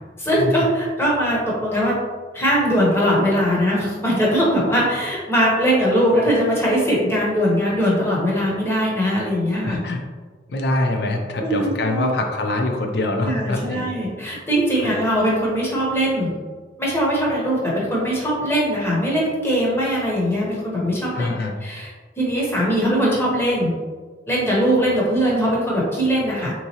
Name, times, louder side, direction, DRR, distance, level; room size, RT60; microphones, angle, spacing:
voice 1, 0.2-2.0 2.3-9.8 11.4-12.1 13.2-16.4 16.8-21.3 21.6-21.9 22.2-23.7 24.3-26.5, equal, 15° left, -5 dB, 0.8 m, -21 dB
voice 2, 9.6-10.0 10.5-13.8 14.8-14.9 21.1-21.6, left 2 dB, 60° left, 3 dB, 0.5 m, -24 dB
3.6 x 2.9 x 2.8 m, 1.5 s
head